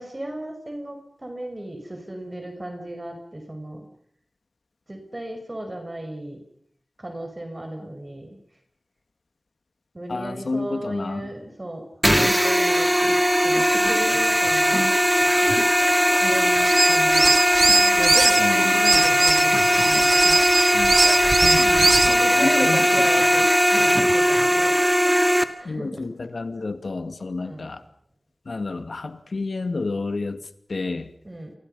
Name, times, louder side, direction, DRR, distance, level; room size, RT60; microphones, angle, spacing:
voice 1, 0.0-3.9 4.9-6.4 7.0-8.4 9.9-14.9 15.2-15.7 16.2-17.4 17.7-20.4 21.7-22.0 22.2-24.8 25.6-26.0 27.4-27.7 31.2-31.6, right 1 dB, 30° right, 5 dB, 5.4 m, -35 dB
voice 2, 10.1-11.3 18.4-18.9 20.7-23.1 24.3-24.5 25.6-27.8 28.5-31.1, left 3 dB, 70° left, 10 dB, 2.2 m, -30 dB
sound 1, 12.0-25.4, equal, 5° right, 2.2 m, -19 dB
sound 2, 16.6-18.4 18.8-22.2, right 3 dB, 60° right, 0.9 m, -21 dB
29.0 x 25.0 x 5.6 m, 0.68 s
wide cardioid pair, 60°, 0 cm